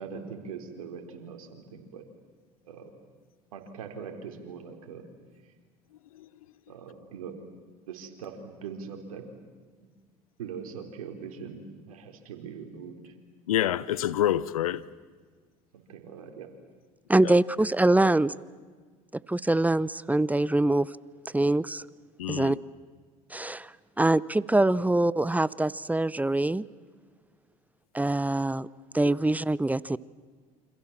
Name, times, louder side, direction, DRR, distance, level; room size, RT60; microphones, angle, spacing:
voice 1, 0.0-2.0 2.7-2.9 3.5-5.0 6.7-7.3 7.9-9.3 10.4-13.1 15.7-16.5 18.0-18.1, right 6 dB, 85° right, 4.1 m, -41 dB
voice 2, 13.5-14.8 17.2-17.3 22.2-22.6 29.0-29.1, left 12 dB, 90° left, 1.0 m, -27 dB
voice 3, 17.1-18.3 19.3-20.9 21.3-21.8 22.3-22.6 23.3-23.7 24.0-26.6 27.9-28.7 28.9-30.0, right 2 dB, 10° right, 0.8 m, -24 dB
29.0 x 26.5 x 7.4 m
hypercardioid pair, 75°, 18 cm